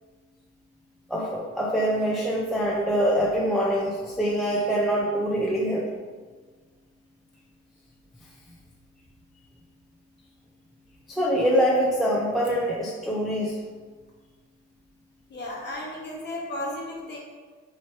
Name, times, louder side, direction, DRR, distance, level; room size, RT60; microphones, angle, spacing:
voice 1, 1.1-5.9 11.1-13.6, equal, ahead, -4 dB, 0.5 m, -24 dB
voice 2, 15.3-17.2, left 1 dB, 35° left, -3 dB, 1.2 m, -34 dB
3.1 x 2.8 x 4.4 m, 1.5 s
cardioid pair, 90°, 30 cm